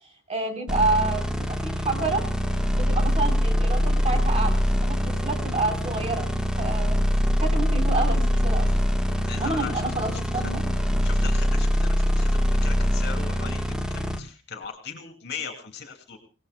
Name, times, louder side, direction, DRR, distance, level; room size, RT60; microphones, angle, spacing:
voice 1, 0.3-2.2 2.7-6.3 6.6-7.0 7.3-8.7 9.3-10.6, right 3 dB, 35° right, 3 dB, 3.7 m, -28 dB
sound 1, 0.7-14.2, equal, 5° right, 1.3 m, -23 dB
voice 2, 9.2-10.5 11.0-16.2, left 6 dB, 60° left, 5 dB, 2.8 m, -39 dB
29.0 x 18.5 x 2.2 m, 0.32 s
head